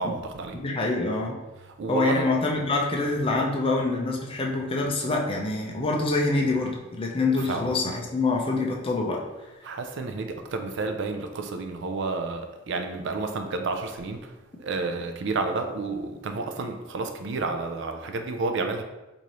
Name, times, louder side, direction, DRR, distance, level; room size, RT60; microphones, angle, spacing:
voice 1, 0.0-0.6 1.6-2.3 7.5-7.7 9.6-14.3 14.6-18.8, right 3 dB, 65° right, 6 dB, 0.4 m, -30 dB
voice 2, 0.5-1.4 1.9-9.2, left 2 dB, 30° left, 0 dB, 0.6 m, -25 dB
4.6 x 2.7 x 2.9 m, 1.0 s
head